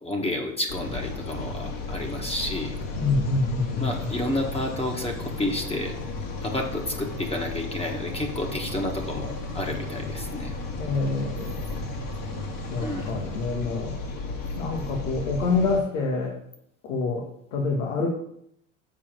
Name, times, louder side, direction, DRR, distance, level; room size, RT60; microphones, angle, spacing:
voice 1, 0.0-2.8 3.7-5.9 6.4-10.5 12.8-13.1, left 1 dB, 15° left, 2 dB, 1.5 m, -30 dB
sound 1, 0.7-15.8, left 2 dB, 55° left, 2.3 m, -34 dB
voice 2, 3.0-4.1 10.8-12.1 12.7-14.0 14.6-16.4 16.8-17.3 17.5-18.1, left 3 dB, 85° left, 0 dB, 1.6 m, -27 dB
7.1 x 4.7 x 6.2 m, 0.73 s
supercardioid pair, 100°, 39 cm